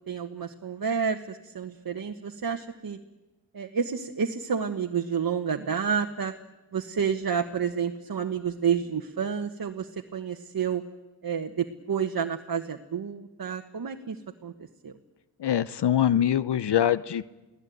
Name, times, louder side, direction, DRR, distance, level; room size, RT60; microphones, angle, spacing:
voice 1, 0.1-3.0 3.5-6.3 6.7-10.8 11.2-14.5 14.8-14.9, right 7 dB, 55° right, 4 dB, 1.4 m, -30 dB
voice 2, 15.4-17.3, left 10 dB, 65° left, 17 dB, 0.8 m, -24 dB
28.5 x 18.0 x 9.3 m, 1.1 s
cardioid pair, 60°, 43 cm